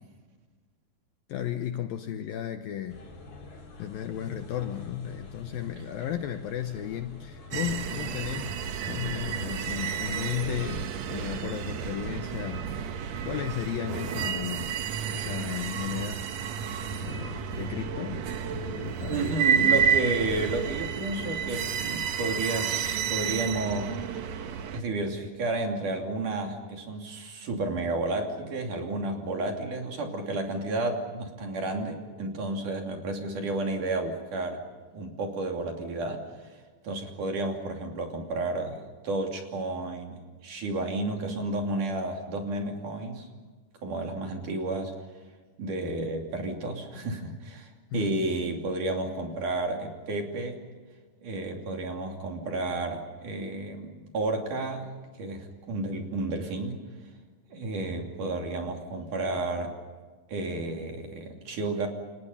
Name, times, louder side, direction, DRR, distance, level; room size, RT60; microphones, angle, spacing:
voice 1, 1.3-3.0 3.8-8.6 8.9-12.6 13.2-14.8 15.1-16.3 16.7-19.5 47.0-47.4 47.9-48.2, left 11 dB, 75° left, 8 dB, 2.3 m, -35 dB
sound 1, 2.9-9.3, left 2 dB, 55° left, 6.1 m, -47 dB
sound 2, 7.5-24.8, right 7 dB, 80° right, 1.5 m, -30 dB
voice 2, 19.1-24.0 24.7-34.6 34.9-36.6 36.8-43.3 43.8-44.9 45.6-50.6 51.2-54.9 55.2-56.8 57.5-59.8 60.3-61.9, right 2 dB, 50° right, 2 dB, 4.0 m, -31 dB
28.5 x 27.5 x 5.6 m, 1.4 s
omnidirectional pair, 5.0 m